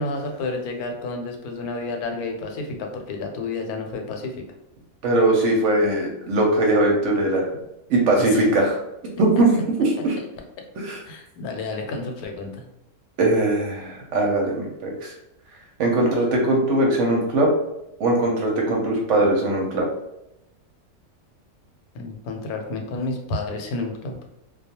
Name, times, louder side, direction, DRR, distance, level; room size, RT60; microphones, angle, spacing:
voice 1, 0.0-4.5 8.1-8.5 9.9-10.0 11.0-12.7 21.9-24.2, left 3 dB, 90° left, 3 dB, 1.1 m, -30 dB
voice 2, 5.0-7.5 7.9-8.8 9.2-9.5 9.8-10.1 10.8-11.0 13.2-15.1 15.8-17.5 18.0-19.9, right 2 dB, 65° right, -1 dB, 0.8 m, -20 dB
2.3 x 2.2 x 2.8 m, 0.86 s
omnidirectional pair, 1.5 m